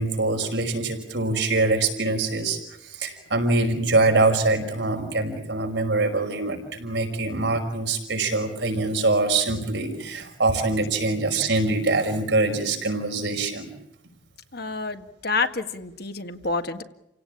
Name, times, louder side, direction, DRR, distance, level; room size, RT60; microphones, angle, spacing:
voice 1, 0.0-13.7, right 2 dB, 70° right, 4 dB, 5.5 m, -24 dB
voice 2, 14.5-16.8, left 4 dB, 60° left, 7 dB, 1.9 m, -28 dB
30.0 x 17.5 x 8.7 m, 0.88 s
head